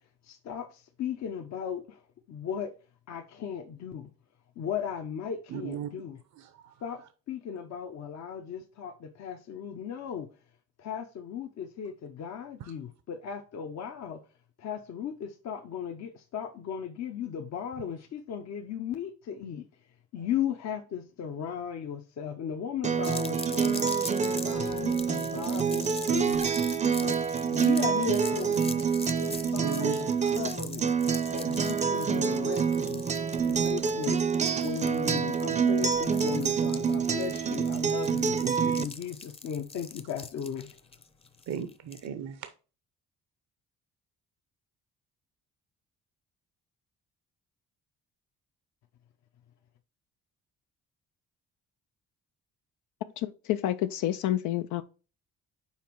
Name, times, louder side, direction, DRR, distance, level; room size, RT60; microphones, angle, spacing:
voice 1, 0.2-2.0 2.3-2.7 3.1-4.1 4.6-6.2 6.8-7.0 7.3-10.3 10.8-14.2 14.6-19.7 20.1-23.8 24.4-26.5 26.8-28.8 29.2-29.9 30.2-30.9 31.3-33.0 33.4-34.2 34.6-38.3 38.8-40.7, left 8 dB, 60° left, 0.8 m, -36 dB
voice 2, 5.5-5.9 6.4-6.8 12.6-12.7 29.6-30.0 38.4-38.8 41.5-42.5, right 9 dB, 65° right, 0.7 m, -36 dB
Acoustic guitar, 22.8-38.8, right 6 dB, 25° right, 0.5 m, -27 dB
sound 1, 23.0-42.1, left 3 dB, 20° left, 0.6 m, -43 dB
voice 3, 53.2-54.8, left 13 dB, 85° left, 0.5 m, -29 dB
5.7 x 4.2 x 4.5 m
cardioid pair, 90°, 30 cm